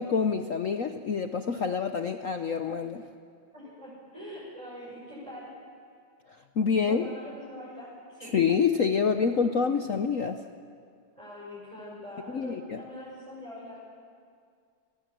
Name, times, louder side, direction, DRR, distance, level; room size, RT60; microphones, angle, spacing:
voice 1, 0.0-3.0 6.6-7.0 8.2-10.4 12.3-12.8, left 6 dB, 60° left, 7 dB, 0.8 m, -27 dB
voice 2, 3.5-5.5 6.7-8.4 11.2-13.8, left 1 dB, 15° right, -8 dB, 6.5 m, -43 dB
29.0 x 19.5 x 7.6 m, 2.2 s
omnidirectional pair, 2.4 m